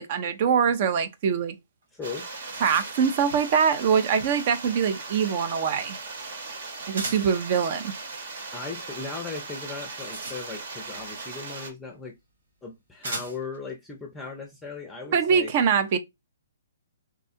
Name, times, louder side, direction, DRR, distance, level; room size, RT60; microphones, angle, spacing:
voice 1, 0.0-1.5 2.6-6.0 6.9-7.9 15.1-16.0, right 7 dB, 40° right, 0.5 m, -23 dB
sound 1, 1.8-1.9 2.2-3.2 6.9-7.4 9.6-10.8 11.9-12.0 13.0-13.6, right 2 dB, 80° right, 1.7 m, -38 dB
voice 2, 1.9-2.3 8.5-12.1 12.6-15.5, left 4 dB, 5° left, 0.6 m, -38 dB
sound 2, 2.0-11.7, right 3 dB, 60° right, 1.2 m, -38 dB
3.6 x 2.3 x 2.5 m
hypercardioid pair, 155°, 0 cm